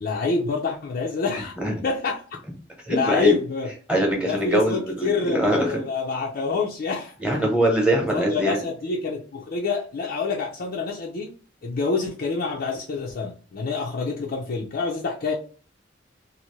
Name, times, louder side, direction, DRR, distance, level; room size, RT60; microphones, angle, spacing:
voice 1, 0.0-1.6 1.8-2.2 2.9-3.7 4.2-7.4 8.1-11.3 11.6-15.3, left 4 dB, 55° left, -2 dB, 0.5 m, -27 dB
voice 2, 2.9-3.3 3.9-5.7 7.2-8.6, right 1 dB, 5° right, -1 dB, 1.0 m, -22 dB
2.7 x 2.6 x 3.1 m, 0.39 s
head